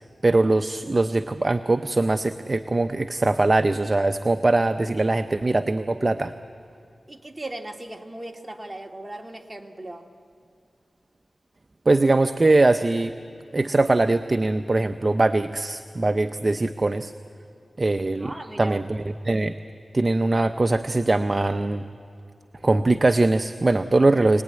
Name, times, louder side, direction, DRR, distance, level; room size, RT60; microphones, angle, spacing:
voice 1, 0.2-6.3 11.9-13.1 13.5-17.1 17.8-18.3 18.6-19.6 19.9-21.9 22.6-24.4, right 2 dB, 40° right, 9 dB, 0.7 m, -21 dB
voice 2, 7.1-10.1 18.2-18.8, right 1 dB, 25° right, 3 dB, 2.0 m, -37 dB
26.0 x 19.5 x 9.7 m, 2.4 s
cardioid pair, 60°, 0 cm